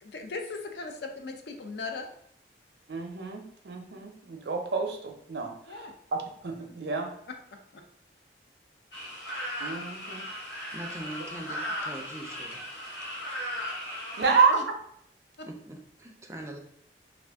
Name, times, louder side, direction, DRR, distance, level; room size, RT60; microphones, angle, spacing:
voice 1, 0.0-2.1 5.7-5.9 7.3-7.4 7.7-7.8 14.2-14.6 15.4-15.5, left 3 dB, 70° left, 4 dB, 0.4 m, -38 dB
voice 2, 2.9-5.5 6.1-7.1 9.6-10.2 14.2-14.5, right 5 dB, 70° right, 4 dB, 0.5 m, -28 dB
sound 1, 8.9-14.5, equal, 90° left, 0.8 m, -37 dB
voice 3, 10.7-12.6 15.4-16.6, right 1 dB, 15° right, 1 dB, 0.4 m, -42 dB
2.5 x 2.4 x 3.4 m, 0.68 s
head